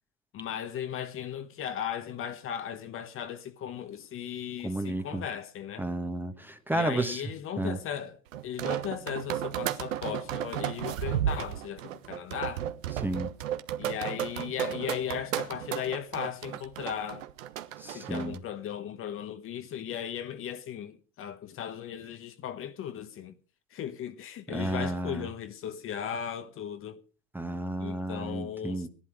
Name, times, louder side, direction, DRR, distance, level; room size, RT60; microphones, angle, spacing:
voice 1, 0.3-5.9 6.7-12.6 13.8-17.3 17.8-23.3 23.7-27.0 27.8-28.9, left 9 dB, 35° left, 1.2 m, -37 dB
voice 2, 4.6-5.2 5.8-7.2 7.6-7.8 13.0-13.3 17.8-18.4 24.5-25.3 27.3-28.9, right 1 dB, 5° right, 1.2 m, -32 dB
sound 1, 8.3-18.4, right 11 dB, 75° right, 1.3 m, -33 dB
17.5 x 11.5 x 4.9 m
hypercardioid pair, 110°, 39 cm